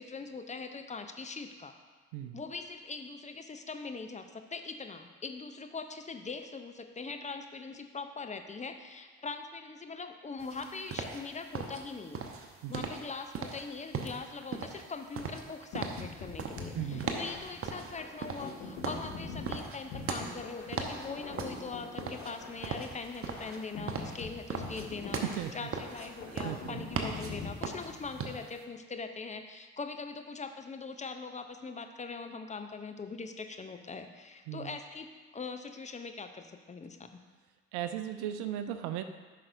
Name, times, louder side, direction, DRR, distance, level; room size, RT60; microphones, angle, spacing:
voice 1, 0.0-1.7 2.3-12.2 12.7-25.2 25.5-37.2, left 4 dB, 20° left, 6 dB, 0.6 m, -42 dB
sound 1, 10.4-28.6, right 5 dB, 40° right, 1.0 m, -39 dB
sound 2, 15.7-28.3, left 3 dB, 55° left, 1.3 m, -44 dB
voice 2, 16.7-17.1 25.2-25.7 26.3-26.8 34.5-34.8 37.7-39.0, right 11 dB, 60° right, 9 dB, 0.6 m, -37 dB
12.5 x 5.8 x 2.6 m, 1.4 s
figure-of-eight pair, 45°, 33 cm